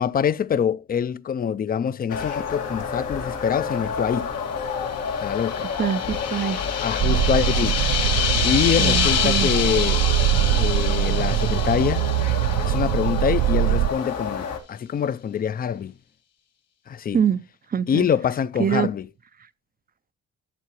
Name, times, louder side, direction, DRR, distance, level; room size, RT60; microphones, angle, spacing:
voice 1, 0.0-4.3 5.2-5.6 6.8-7.8 8.4-10.0 10.6-12.1 12.6-15.9 16.9-17.2 17.9-19.0, left 8 dB, 30° left, 0.4 m, -25 dB
sound 1, 2.1-14.6, left 6 dB, 85° left, 2.1 m, -30 dB
sound 2, 4.9-13.2, left 8 dB, 55° left, 1.1 m, -27 dB
voice 2, 5.6-6.6 8.8-9.5 17.1-17.4 17.7-18.1 18.6-18.9, right 8 dB, 30° right, 0.4 m, -24 dB
sound 3, 7.0-13.9, right 14 dB, 80° right, 0.5 m, -22 dB
12.5 x 7.3 x 3.0 m
cardioid pair, 90°, 30 cm